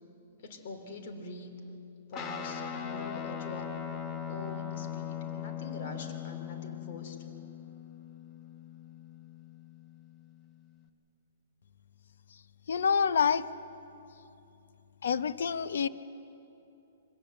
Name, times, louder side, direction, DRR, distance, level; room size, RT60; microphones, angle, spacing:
voice 1, 0.4-1.5 2.1-3.7 4.3-7.3, left 3 dB, 50° left, 5 dB, 3.2 m, -43 dB
Guitar, 2.1-10.9, left 9 dB, 20° left, 1.2 m, -40 dB
voice 2, 12.7-13.4 15.0-15.9, left 6 dB, 75° left, 13 dB, 0.8 m, -27 dB
25.0 x 18.0 x 7.8 m, 2.9 s
hypercardioid pair, 160°, 0 cm